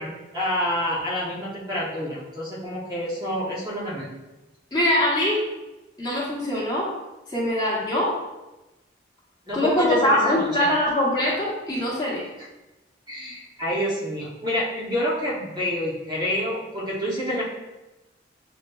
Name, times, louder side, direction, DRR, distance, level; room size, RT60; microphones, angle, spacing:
voice 1, 0.0-4.2 9.5-10.7 12.4-12.5 13.1-17.4, left 1 dB, 20° right, -6 dB, 0.7 m, -28 dB
voice 2, 4.7-5.4 6.0-6.9 7.3-8.1 9.5-12.2, left 1 dB, 20° left, -6 dB, 0.9 m, -22 dB
6.4 x 2.2 x 2.2 m, 1.0 s
head